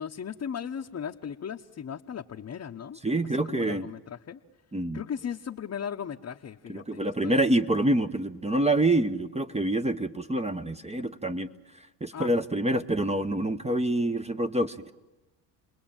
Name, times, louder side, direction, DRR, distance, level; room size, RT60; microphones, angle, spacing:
voice 1, 0.0-3.0 3.4-4.4 4.9-7.5 12.1-12.3, left 8 dB, 35° left, 2 dB, 1.1 m, -37 dB
voice 2, 3.0-3.9 4.7-5.0 6.7-11.5 12.0-14.9, right 1 dB, 15° right, 8 dB, 1.1 m, -26 dB
29.5 x 20.5 x 8.9 m, 1.1 s
supercardioid pair, 80°, 45 cm